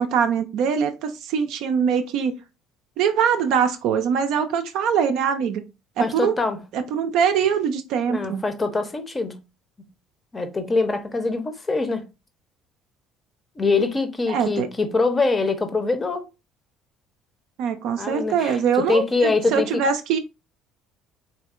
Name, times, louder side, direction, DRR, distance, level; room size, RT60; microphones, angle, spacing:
voice 1, 0.0-2.3 3.0-5.6 6.0-6.3 6.7-8.4 14.3-14.7 17.6-20.2, right 7 dB, 55° right, 0.4 m, -22 dB
voice 2, 6.0-6.6 8.1-9.4 10.3-12.1 13.6-16.2 18.0-19.8, left 3 dB, 25° left, 0.6 m, -24 dB
3.4 x 2.7 x 2.4 m
figure-of-eight pair, 55°, 0 cm